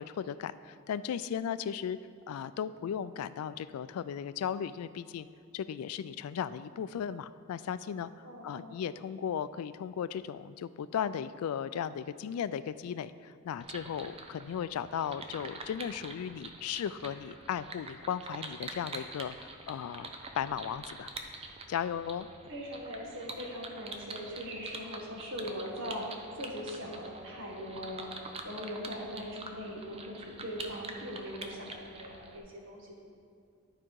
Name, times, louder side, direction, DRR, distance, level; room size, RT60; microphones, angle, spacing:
voice 1, 0.0-2.0 2.3-5.3 5.5-8.1 8.4-21.1 21.7-22.3, left 8 dB, 85° left, 15 dB, 0.3 m, -36 dB
voice 2, 8.2-8.8 22.5-26.0 26.3-28.1 28.4-33.0, equal, 60° right, -2 dB, 1.6 m, -41 dB
sound 1, 13.6-32.4, right 3 dB, 25° right, 0.5 m, -46 dB
11.0 x 4.8 x 4.6 m, 2.3 s
head